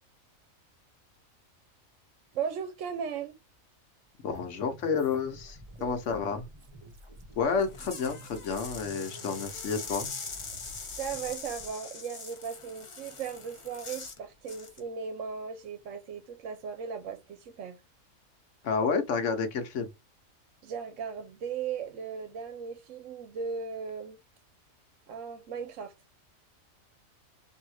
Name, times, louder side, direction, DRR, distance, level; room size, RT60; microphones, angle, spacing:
voice 1, 2.3-3.4 5.8-6.3 11.0-17.8 20.6-24.2 25.1-25.9, right 6 dB, 65° right, 1.0 m, -37 dB
voice 2, 4.2-6.4 7.4-10.1 18.6-19.9, left 5 dB, 65° left, 1.1 m, -30 dB
sound 1, 4.3-11.7, equal, 30° right, 0.6 m, -50 dB
sound 2, 7.5-14.2 14.5-14.8, left 4 dB, 35° left, 0.5 m, -42 dB
3.6 x 2.8 x 4.7 m
omnidirectional pair, 1.4 m